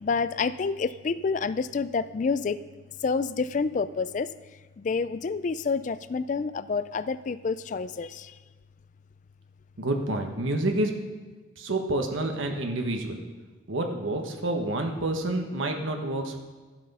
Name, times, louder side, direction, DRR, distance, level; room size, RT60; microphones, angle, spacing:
voice 1, 0.0-2.6 3.0-4.3 4.8-8.4, left 4 dB, 40° left, 15 dB, 0.3 m, -28 dB
voice 2, 9.8-11.0 11.6-13.2 13.7-16.4, right 2 dB, 85° right, 3 dB, 1.2 m, -28 dB
12.0 x 7.5 x 5.4 m, 1.4 s
head